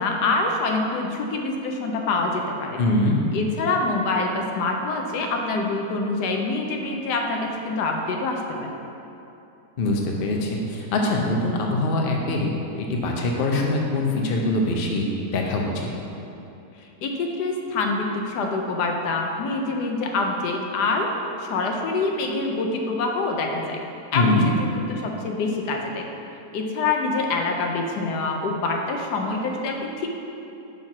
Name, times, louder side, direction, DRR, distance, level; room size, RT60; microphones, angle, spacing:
voice 1, 0.0-2.8 3.3-8.8 17.0-21.1 21.4-23.8 24.1-24.4 24.8-26.1 26.5-30.1, left 3 dB, 75° left, 2 dB, 1.2 m, -25 dB
voice 2, 2.8-3.2 9.8-15.1 15.3-15.9 24.1-24.5, left 2 dB, 55° left, 0 dB, 0.6 m, -23 dB
5.7 x 4.4 x 5.9 m, 2.8 s
omnidirectional pair, 1.9 m